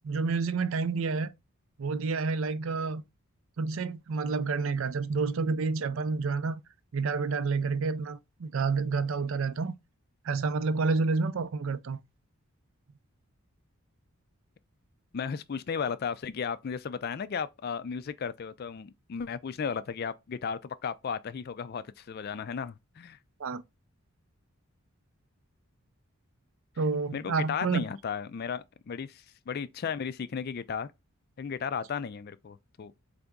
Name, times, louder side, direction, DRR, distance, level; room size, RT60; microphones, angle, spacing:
voice 1, 0.0-1.3 1.8-3.0 3.6-6.6 6.9-9.7 10.2-12.0 23.4-23.6 26.8-27.8, right 4 dB, 65° right, 0.4 m, -29 dB
voice 2, 15.1-23.2 27.1-30.9 31.4-32.9, left 6 dB, 45° left, 0.3 m, -35 dB
4.0 x 3.4 x 3.6 m
head